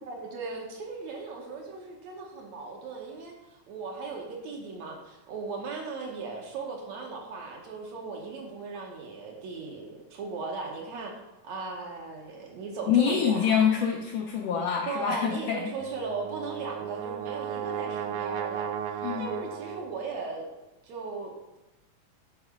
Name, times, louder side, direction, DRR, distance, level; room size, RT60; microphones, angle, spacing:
voice 1, 0.0-11.2 11.4-13.7 14.9-20.5 20.8-21.3, right 4 dB, 65° right, 0 dB, 2.2 m, -37 dB
voice 2, 12.9-15.7 19.0-19.4, left 8 dB, 75° left, 1 dB, 1.5 m, -26 dB
Brass instrument, 15.8-20.1, right 9 dB, 80° right, 1.9 m, -35 dB
10.5 x 4.1 x 5.0 m, 1.0 s
omnidirectional pair, 3.6 m